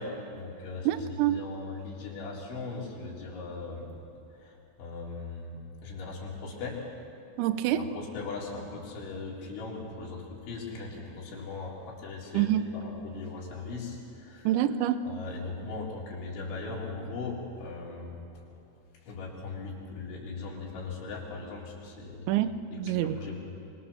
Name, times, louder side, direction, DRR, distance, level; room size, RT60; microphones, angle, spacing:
voice 1, 0.0-3.9 4.4-6.8 7.8-14.5 15.0-18.4 19.0-22.3 22.7-23.4, left 3 dB, 80° left, -4 dB, 6.3 m, -39 dB
voice 2, 0.9-1.5 7.4-7.8 12.3-12.6 14.4-15.0 22.3-23.2, right 12 dB, 80° right, 11 dB, 3.1 m, -26 dB
26.0 x 23.5 x 7.2 m, 2.8 s
omnidirectional pair, 5.4 m